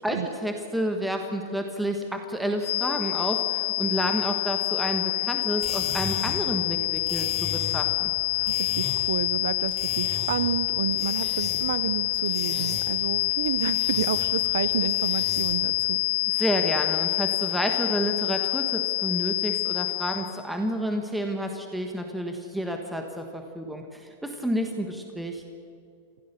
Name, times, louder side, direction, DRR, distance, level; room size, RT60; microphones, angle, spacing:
voice 1, 0.0-8.1 16.3-25.4, equal, ahead, 3 dB, 1.3 m, -30 dB
sound 1, 2.6-20.4, left 20 dB, 70° left, 1.4 m, -27 dB
sound 2, 5.4-15.7, left 3 dB, 15° left, 5.2 m, -39 dB
voice 2, 8.3-16.0, right 9 dB, 80° right, 14 dB, 0.7 m, -30 dB
25.5 x 16.0 x 6.8 m, 2.4 s
supercardioid pair, 160°, 0 cm